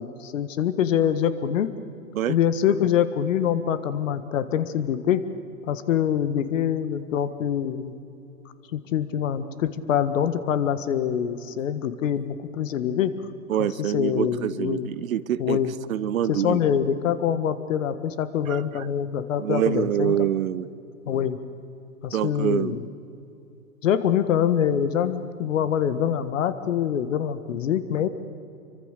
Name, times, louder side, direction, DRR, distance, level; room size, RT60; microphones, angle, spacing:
voice 1, 0.0-1.7 2.3-5.2 5.7-7.9 8.7-13.1 13.6-14.9 15.4-15.8 16.3-20.3 21.1-21.4 22.0-22.9 23.8-28.1, left 9 dB, 60° left, 12 dB, 1.7 m, -25 dB
voice 2, 13.5-15.6 15.9-16.6 18.5-18.6 19.4-20.7 22.1-22.8, right 11 dB, 70° right, 17 dB, 1.0 m, -25 dB
27.0 x 24.0 x 6.7 m, 2.8 s
hypercardioid pair, 130°, 43 cm